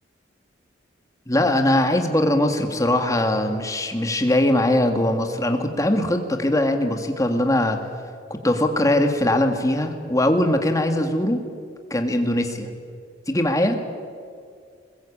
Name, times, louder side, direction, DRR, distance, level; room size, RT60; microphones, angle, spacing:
voice 1, 1.3-7.8 8.3-11.4 11.9-12.7 13.3-13.8, left 1 dB, 20° left, 5 dB, 2.0 m, -21 dB
21.0 x 20.5 x 8.7 m, 2.2 s
head